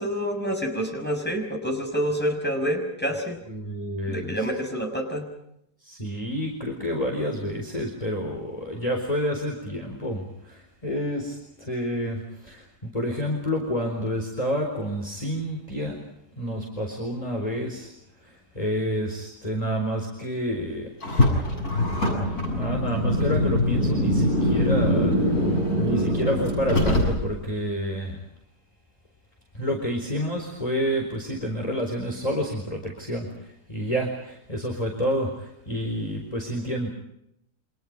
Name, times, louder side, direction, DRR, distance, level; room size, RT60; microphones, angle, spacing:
voice 1, 0.0-3.4 4.1-5.3, equal, 5° left, 3 dB, 6.0 m, -27 dB
voice 2, 3.5-4.4 5.8-16.0 16.4-17.9 18.2-20.9 22.1-25.1 25.8-28.2 29.5-36.9, equal, 20° left, 1 dB, 4.3 m, -29 dB
Car, 21.0-27.5, left 1 dB, 65° left, 8.0 m, -23 dB
29.0 x 26.0 x 5.3 m, 0.79 s
omnidirectional pair, 1.7 m